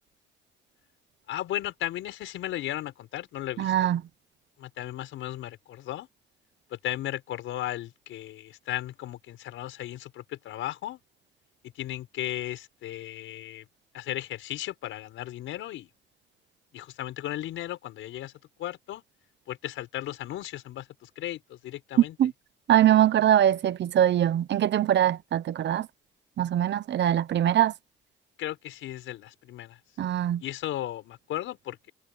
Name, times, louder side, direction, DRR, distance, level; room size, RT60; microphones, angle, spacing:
voice 1, 1.3-4.0 4.6-6.1 6.7-11.0 11.8-13.7 13.9-15.9 16.7-18.3 18.6-19.0 19.5-22.2 28.4-29.8 30.4-31.9, left 13 dB, 85° left, 5.5 m, -35 dB
voice 2, 3.6-4.0 22.2-22.3 22.7-25.9 26.4-27.7 30.0-30.4, right 11 dB, 65° right, 1.1 m, -22 dB
cardioid pair, 90°, 20 cm